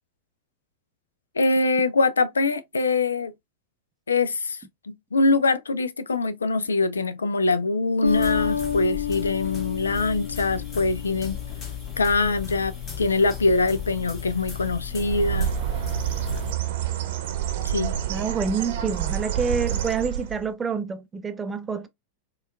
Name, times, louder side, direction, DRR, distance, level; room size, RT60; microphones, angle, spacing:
voice 1, 1.4-3.3 4.1-4.6 4.9-11.4 12.0-15.5 17.6-18.0, left 3 dB, 75° left, 0.3 m, -23 dB
sound 1, 8.0-16.5, left 8 dB, 25° left, 1.3 m, -35 dB
Bass guitar, 8.0-11.6, left 7 dB, 90° right, 0.4 m, -29 dB
Bird, 14.9-20.5, right 11 dB, 55° right, 0.8 m, -28 dB
voice 2, 18.1-21.9, right 5 dB, 15° right, 0.5 m, -27 dB
4.2 x 2.3 x 2.3 m
figure-of-eight pair, 90°, 0 cm